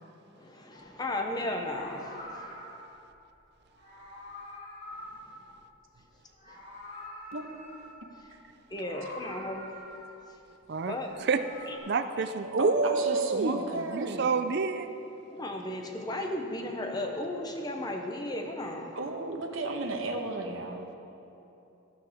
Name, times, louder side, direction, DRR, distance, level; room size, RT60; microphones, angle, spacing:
voice 1, 0.4-2.6 6.5-6.6 8.7-9.7 10.9-11.1 11.7-11.8 15.3-19.0, left 1 dB, 20° left, 3 dB, 0.8 m, -35 dB
Meow, 0.7-0.9 1.5-3.0 3.7-6.0 6.2-8.2 8.7-10.3 10.8-11.8, left 1 dB, 35° left, 3.2 m, -46 dB
voice 2, 10.7-11.4 11.9-13.6 13.9-14.9, right 4 dB, 50° right, 10 dB, 0.5 m, -28 dB
voice 3, 12.6-14.3 18.9-20.9, right 2 dB, 70° right, 3 dB, 1.2 m, -34 dB
14.0 x 12.5 x 3.6 m, 2.9 s
head